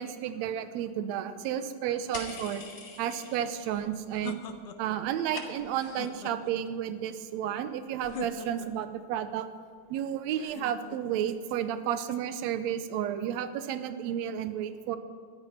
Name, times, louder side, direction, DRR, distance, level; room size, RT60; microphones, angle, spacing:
voice 1, 0.0-2.6 3.0-4.4 4.8-9.5 9.9-15.0, right 10 dB, 75° right, 11 dB, 1.9 m, -32 dB
sound 1, 2.1-3.7 4.0-4.6 4.8-5.9, left 3 dB, 45° left, 2.4 m, -43 dB
sound 2, 3.6-5.0 5.6-6.7 8.0-8.9 10.4-11.2, left 5 dB, 65° left, 1.7 m, -43 dB
13.0 x 11.5 x 5.8 m, 2.2 s
omnidirectional pair, 3.3 m